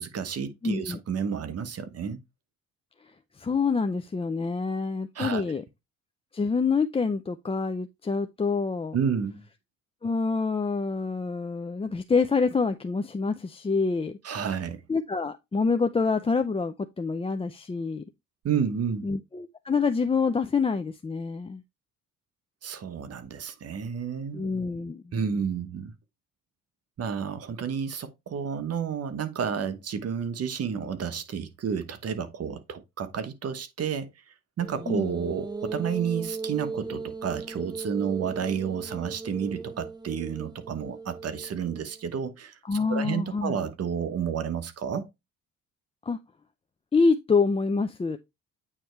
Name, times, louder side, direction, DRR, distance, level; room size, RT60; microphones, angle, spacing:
voice 1, 0.0-2.2 5.1-5.4 8.9-9.4 14.2-14.8 18.4-19.1 22.6-24.4 25.1-25.9 27.0-34.1 34.6-45.1, right 7 dB, 55° right, 1.1 m, -31 dB
voice 2, 0.6-1.0 3.4-5.6 6.3-9.0 10.0-14.2 14.9-18.0 19.0-21.6 24.3-25.2 34.9-35.1 42.7-43.6 46.1-46.2 46.9-48.2, left 4 dB, 20° left, 0.5 m, -26 dB
sound 1, 34.6-42.0, right 4 dB, 15° right, 0.8 m, -37 dB
8.7 x 3.2 x 4.5 m
cardioid pair, 90°, 30 cm